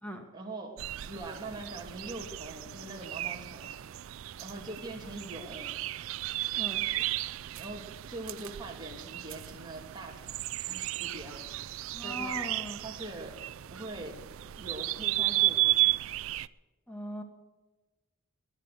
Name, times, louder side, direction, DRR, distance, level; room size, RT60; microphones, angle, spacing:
voice 1, 0.3-0.8 1.1-3.7 4.4-5.7 7.0-7.1 7.6-11.7 12.0-12.4 12.8-13.4 13.7-14.2 14.6-16.0, right 2 dB, 20° right, 0 dB, 2.6 m, -43 dB
sound 1, 0.8-16.5, right 17 dB, 65° right, 0.4 m, -34 dB
voice 2, 11.9-12.8 16.9-17.2, equal, 5° left, 4 dB, 1.9 m, -39 dB
20.0 x 9.9 x 6.5 m, 1.2 s
head